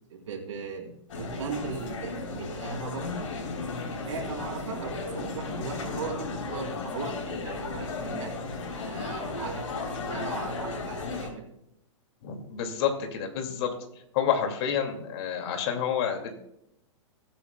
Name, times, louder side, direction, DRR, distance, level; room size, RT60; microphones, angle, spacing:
voice 1, 0.1-3.0 4.0-8.3 8.8-11.5, right 4 dB, 80° right, 0 dB, 3.3 m, -38 dB
sound 1, 1.1-11.3, left 3 dB, 80° left, 3.3 m, -35 dB
voice 2, 12.2-13.7 14.1-16.3, left 8 dB, 55° left, 4 dB, 2.2 m, -28 dB
20.5 x 8.6 x 2.2 m, 0.78 s
hypercardioid pair, 125°, 16 cm